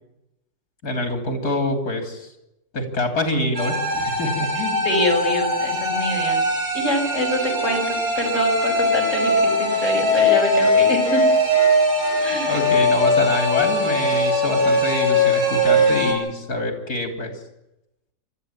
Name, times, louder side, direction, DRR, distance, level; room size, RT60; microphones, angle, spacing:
voice 1, 0.8-2.3 2.7-4.8 12.4-17.3, left 1 dB, 75° left, 5 dB, 3.7 m, -25 dB
sound 1, 3.5-16.1, left 1 dB, 40° right, 5.2 m, -20 dB
voice 2, 4.8-6.4 6.7-11.3 12.2-12.6, left 1 dB, 50° left, 3 dB, 5.9 m, -25 dB
28.5 x 13.0 x 8.7 m, 0.91 s
omnidirectional pair, 1.6 m